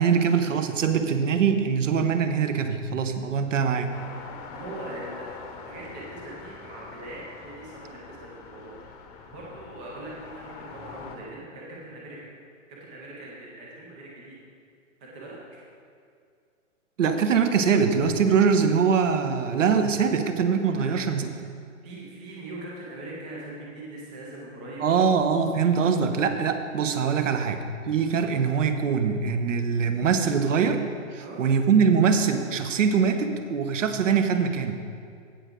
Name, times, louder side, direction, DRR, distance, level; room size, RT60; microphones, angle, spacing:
voice 1, 0.0-3.9 17.0-21.3 24.8-30.8 31.1-34.8, right 6 dB, 75° right, 8 dB, 1.0 m, -23 dB
sound 1, 3.9-11.2, left 5 dB, 30° left, 0.8 m, -44 dB
voice 2, 4.5-5.3 5.7-8.8 9.3-12.3 12.7-14.4 15.0-15.6 20.8-21.1 21.8-25.1 27.2-27.4 31.2-31.4, right 2 dB, 10° right, -4 dB, 0.3 m, -41 dB
16.0 x 5.6 x 3.7 m, 2.3 s
hypercardioid pair, 145°, 38 cm